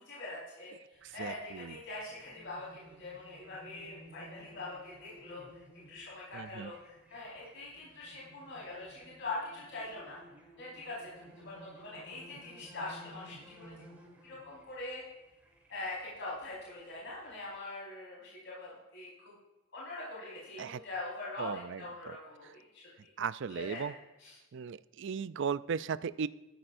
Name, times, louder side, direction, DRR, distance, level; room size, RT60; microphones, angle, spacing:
voice 1, 0.0-5.6 5.9-10.2 10.6-13.7 14.2-15.0 15.7-19.3 19.7-22.8 23.5-23.9 24.2-24.4, left 2 dB, 55° left, -6 dB, 4.5 m, -43 dB
sound 1, 0.9-17.6, equal, 5° right, 2.9 m, -56 dB
voice 2, 1.0-1.8 6.3-6.7 20.6-20.8 21.4-22.2 23.2-23.9 24.5-26.3, right 6 dB, 55° right, 16 dB, 0.4 m, -37 dB
15.0 x 13.5 x 2.6 m, 1.1 s
head